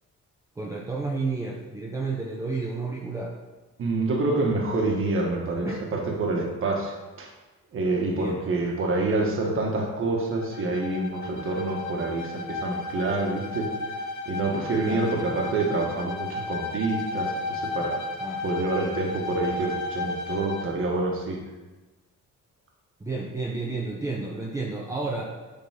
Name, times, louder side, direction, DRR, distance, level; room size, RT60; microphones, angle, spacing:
voice 1, 0.6-3.3 5.6-6.0 8.1-8.4 14.8-15.0 18.2-18.4 23.0-25.3, right 3 dB, 10° right, -2 dB, 0.6 m, -31 dB
voice 2, 3.8-7.3 7.7-13.7 14.2-18.0 18.4-21.4, right 2 dB, 45° right, 0 dB, 1.4 m, -27 dB
Bowed string instrument, 10.3-20.8, left 3 dB, 80° left, 1.1 m, -33 dB
9.3 x 3.9 x 5.7 m, 1.2 s
cardioid pair, 175°, 29 cm